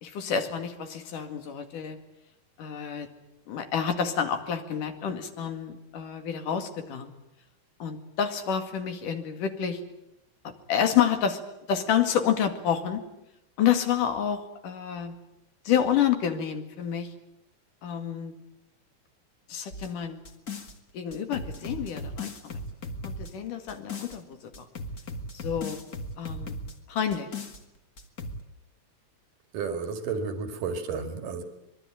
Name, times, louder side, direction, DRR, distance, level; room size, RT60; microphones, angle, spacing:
voice 1, 0.0-2.0 2.6-3.1 3.5-7.1 7.8-9.8 10.7-11.4 11.7-13.0 13.6-15.2 15.7-17.1 17.8-18.3 19.5-20.2 20.9-22.6 23.0-24.6 25.3-25.8 26.2-26.6 26.9-27.3, left 8 dB, 80° left, 3.7 m, -28 dB
sound 1, 19.7-20.8 21.1-24.2 24.5-26.8 27.1-27.6 28.0-28.4, left 1 dB, 35° left, 2.0 m, -37 dB
voice 2, 29.5-31.4, right 5 dB, 85° right, 3.8 m, -32 dB
25.0 x 22.0 x 9.1 m
omnidirectional pair, 3.7 m